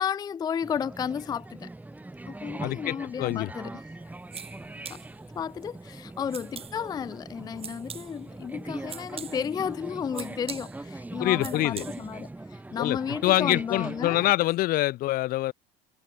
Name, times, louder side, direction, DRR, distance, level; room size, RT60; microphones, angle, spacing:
voice 1, 0.0-1.7 2.3-3.8 4.9-5.0 5.4-14.3, left 7 dB, 20° left, 0.4 m, -33 dB
sound 1, 0.6-14.3, right 2 dB, 10° right, 3.2 m, -41 dB
voice 2, 2.6-3.5 11.2-11.8 12.7-15.5, left 16 dB, 50° left, 0.8 m, -25 dB
sound 2, 4.0-12.3, right 8 dB, 30° right, 1.7 m, -45 dB
supercardioid pair, 110°, 19 cm